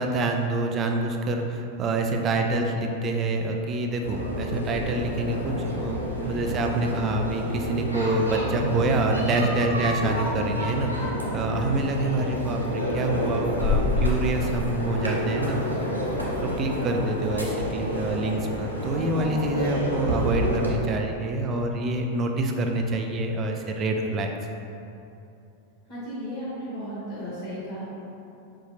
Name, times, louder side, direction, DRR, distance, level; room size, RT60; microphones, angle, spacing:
voice 1, 0.0-15.6 16.4-24.3, right 2 dB, 30° right, 2 dB, 0.4 m, -26 dB
sound 1, 4.0-20.7, equal, 90° left, 0.6 m, -29 dB
voice 2, 25.9-27.8, equal, 45° left, -10 dB, 1.4 m, -34 dB
5.6 x 2.5 x 2.8 m, 2.8 s
figure-of-eight pair, 90°, 0 cm